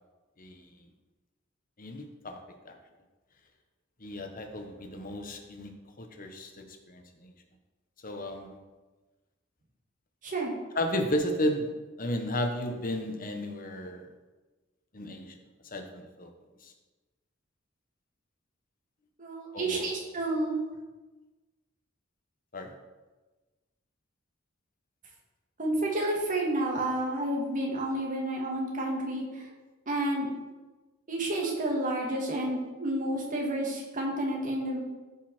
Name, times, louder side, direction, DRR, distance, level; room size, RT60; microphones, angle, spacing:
voice 1, 0.4-0.7 1.8-2.8 4.0-7.3 8.0-8.6 10.7-11.7 12.0-14.1 14.9-15.4 15.6-16.3 16.6-16.7 19.5-19.9 22.5-22.7, left 1 dB, 45° left, 4 dB, 1.3 m, -34 dB
voice 2, 19.2-20.6 25.6-29.2 29.9-30.3 31.1-34.8, right 1 dB, 40° right, -2 dB, 2.3 m, -30 dB
14.5 x 5.6 x 4.5 m, 1.2 s
head